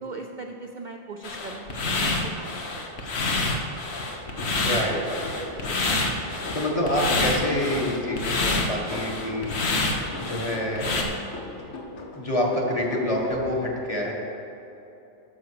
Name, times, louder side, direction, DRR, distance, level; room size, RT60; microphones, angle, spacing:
voice 1, 0.0-2.9 3.1-3.3, right 3 dB, 55° right, 3 dB, 0.6 m, -39 dB
sound 1, 1.2-11.0, left 2 dB, 65° left, 1.4 m, -27 dB
sound 2, 4.2-13.5, left 2 dB, 80° left, 1.4 m, -41 dB
voice 2, 4.6-6.0 6.5-9.6 10.2-11.0 12.1-14.1, left 1 dB, 30° left, -2 dB, 1.6 m, -27 dB
12.0 x 5.8 x 6.8 m, 2.9 s
omnidirectional pair, 1.2 m